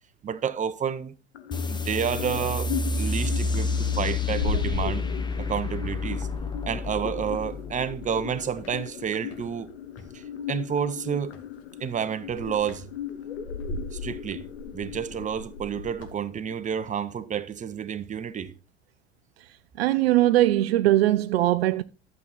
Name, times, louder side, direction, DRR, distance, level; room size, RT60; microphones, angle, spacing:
voice 1, 0.2-1.1 1.7-2.7 3.0-5.0 5.4-6.3 6.7-9.7 10.1-11.4 11.8-12.9 13.9-14.5 14.7-18.5, right 8 dB, 25° right, 1.0 m, -30 dB
sound 1, 1.3-17.3, left 10 dB, 75° left, 1.1 m, -39 dB
sound 2, 1.5-8.6, left 4 dB, 15° left, 1.1 m, -30 dB
sound 3, 4.2-5.6 5.9-8.2 8.6-10.1 11.2-11.6 12.0-16.2, left 2 dB, 45° left, 2.4 m, -38 dB
voice 2, 19.8-21.8, right 15 dB, 65° right, 0.6 m, -20 dB
12.0 x 7.5 x 4.2 m
figure-of-eight pair, 75°, 32 cm